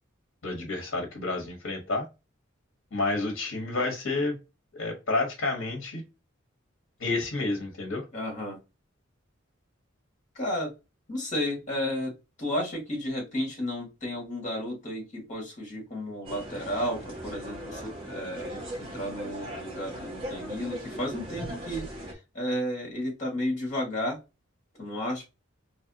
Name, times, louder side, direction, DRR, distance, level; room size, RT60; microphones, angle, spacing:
voice 1, 0.4-2.1 2.9-4.4 4.7-6.0 7.0-8.0, left 2 dB, 65° left, 2 dB, 1.2 m, -30 dB
voice 2, 8.1-8.6 10.4-10.7 11.1-24.2 24.8-25.2, left 1 dB, 40° left, -1 dB, 2.0 m, -33 dB
sound 1, 16.2-22.1, equal, 25° right, 1.3 m, -39 dB
4.0 x 3.2 x 2.8 m, 0.27 s
head